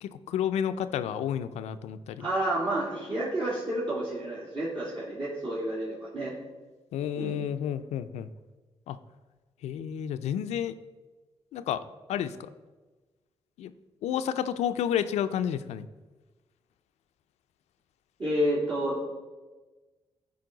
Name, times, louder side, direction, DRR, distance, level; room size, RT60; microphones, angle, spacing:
voice 1, 0.0-2.3 6.9-8.3 8.9-9.0 9.6-10.7 11.5-12.5 13.6-13.7 14.0-15.9, left 9 dB, 90° left, 12 dB, 0.5 m, -31 dB
voice 2, 2.2-6.3 7.2-7.4 18.2-19.1, right 1 dB, 50° right, -9 dB, 2.9 m, -30 dB
12.5 x 5.1 x 3.9 m, 1.2 s
cardioid pair, 85°, 11 cm